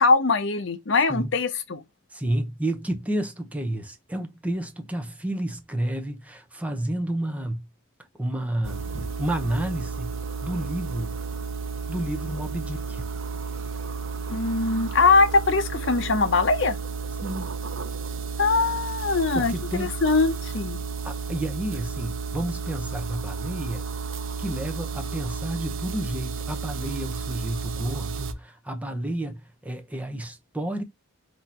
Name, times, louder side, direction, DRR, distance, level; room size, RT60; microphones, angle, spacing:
voice 1, 0.0-1.8 14.3-16.8 18.4-20.8, left 3 dB, 65° left, 0.8 m, -22 dB
voice 2, 2.1-7.6 8.2-11.1 11.9-13.0 17.2-17.5 19.3-19.9 21.0-23.9 24.4-30.8, right 1 dB, 5° right, 0.8 m, -30 dB
sound 1, 8.6-28.3, right 5 dB, 85° right, 0.7 m, -32 dB
4.1 x 2.9 x 4.2 m
head